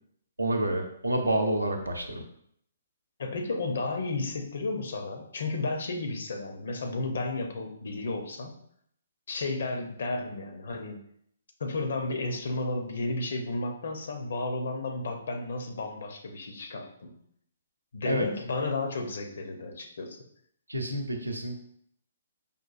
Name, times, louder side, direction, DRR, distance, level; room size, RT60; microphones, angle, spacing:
voice 1, 0.4-2.2 18.0-18.3 20.7-21.6, right 1 dB, 90° right, 3 dB, 0.5 m, -28 dB
voice 2, 3.2-8.5 9.3-11.0 11.6-17.1 17.9-20.2, left 2 dB, 65° left, 4 dB, 0.6 m, -33 dB
5.0 x 2.4 x 2.4 m, 0.69 s
figure-of-eight pair, 130°, 0 cm